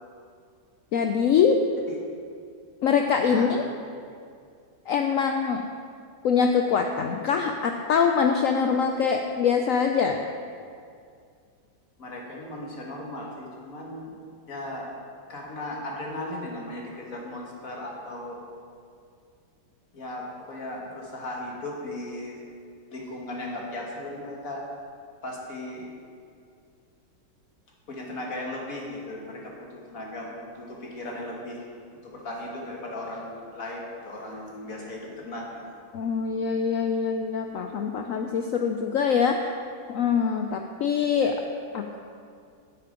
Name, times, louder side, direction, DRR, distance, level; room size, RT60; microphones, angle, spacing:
voice 1, 0.9-1.6 2.8-3.6 4.9-5.6 6.2-10.2 35.9-39.5 39.9-41.4 41.7-42.0, left 6 dB, 75° left, 4 dB, 0.7 m, -24 dB
voice 2, 3.3-3.7 12.0-14.1 14.5-14.9 15.3-18.4 19.9-22.4 22.9-24.7 25.2-25.9 27.9-31.7 31.9-35.6, left 1 dB, 50° left, -2 dB, 1.8 m, -37 dB
8.9 x 8.7 x 5.1 m, 2.3 s
omnidirectional pair, 1.9 m